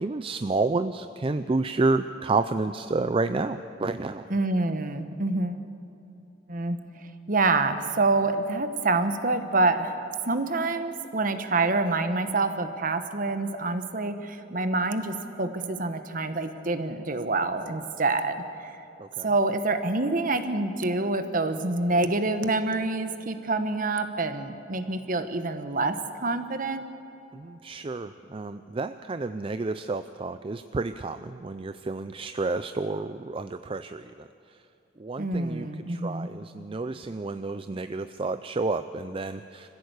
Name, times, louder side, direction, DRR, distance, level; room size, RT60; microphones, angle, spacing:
voice 1, 0.0-4.2 19.0-19.3 27.3-34.6 35.0-39.7, right 3 dB, 30° right, 10 dB, 0.4 m, -30 dB
voice 2, 4.3-5.6 6.5-6.8 7.3-18.7 19.2-26.8 35.2-36.3, right 3 dB, 45° right, 9 dB, 1.2 m, -27 dB
25.5 x 15.0 x 8.1 m, 2.8 s
head